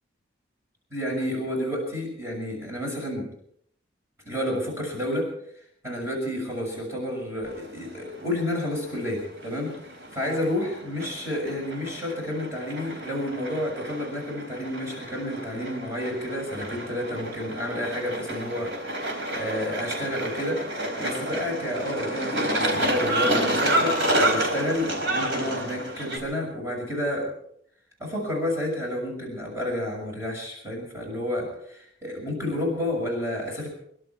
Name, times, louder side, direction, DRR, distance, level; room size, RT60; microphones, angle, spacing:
voice 1, 0.9-3.3 4.2-5.3 5.8-9.7 10.1-27.3 28.0-33.7, left 1 dB, 15° right, -2 dB, 6.5 m, -30 dB
sound 1, 7.4-26.2, right 1 dB, 70° right, 4.5 m, -29 dB
26.0 x 12.0 x 4.6 m, 0.68 s
head